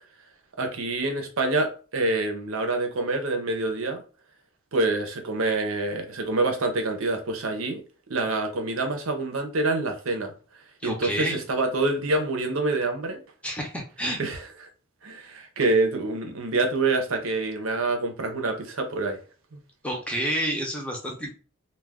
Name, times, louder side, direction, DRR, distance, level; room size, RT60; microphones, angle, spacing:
voice 1, 0.6-4.0 4.7-7.8 8.1-10.3 10.8-13.2 14.2-14.5 15.0-19.2 19.5-19.6, right 2 dB, 80° right, 0.7 m, -26 dB
voice 2, 10.8-11.4 13.4-14.2 19.8-21.3, equal, 5° left, 0.6 m, -29 dB
2.3 x 2.3 x 3.5 m
head